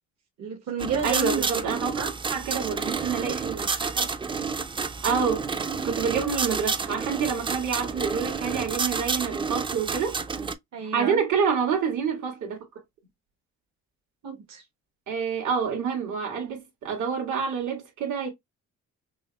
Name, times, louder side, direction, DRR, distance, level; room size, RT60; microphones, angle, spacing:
voice 1, 0.4-1.5 2.0-2.1 10.7-11.2 14.2-14.6, right 5 dB, 65° right, 1.1 m, -30 dB
sound 1, 0.8-10.5, right 4 dB, 15° right, 0.3 m, -30 dB
voice 2, 1.0-2.0 2.3-4.1 5.0-5.4 5.8-10.2 10.9-12.6 15.1-18.3, right 6 dB, 80° right, 1.9 m, -27 dB
6.0 x 2.1 x 2.2 m
cardioid pair, 90°, 30 cm